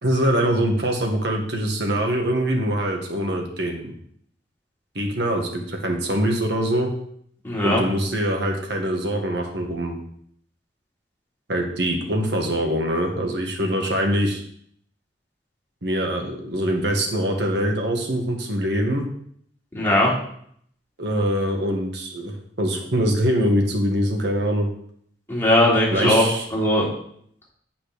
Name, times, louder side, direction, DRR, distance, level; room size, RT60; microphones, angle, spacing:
voice 1, 0.0-3.9 4.9-6.9 7.6-10.0 11.5-14.4 15.8-19.1 21.0-24.7 25.9-26.4, equal, 65° right, 2 dB, 1.7 m, -23 dB
voice 2, 7.4-7.8 19.7-20.1 25.3-26.2 26.5-26.9, left 1 dB, 15° left, -6 dB, 3.1 m, -19 dB
8.6 x 6.0 x 5.1 m, 0.66 s
head